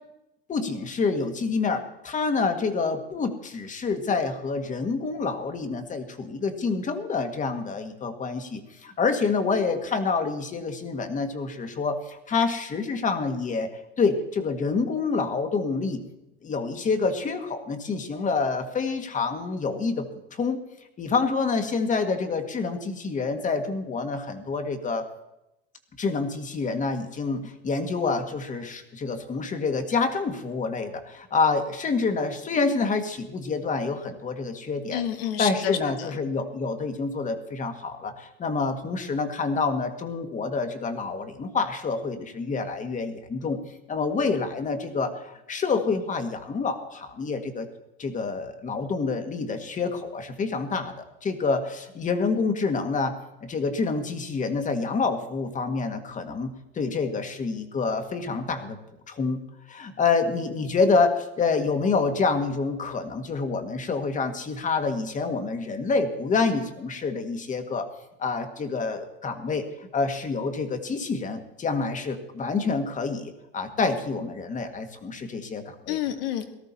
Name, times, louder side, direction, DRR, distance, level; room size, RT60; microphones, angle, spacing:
voice 1, 0.5-13.7 14.0-16.0 16.4-20.6 21.0-25.1 26.0-35.0 35.4-43.6 43.9-47.7 48.0-53.2 53.4-58.8 59.1-59.4 59.7-67.9 68.2-76.0, left 4 dB, 25° left, 7 dB, 1.8 m, -27 dB
voice 2, 34.9-36.1 75.9-76.5, left 10 dB, 70° left, 6 dB, 1.9 m, -29 dB
18.0 x 13.0 x 4.2 m, 0.90 s
supercardioid pair, 110°, 30 cm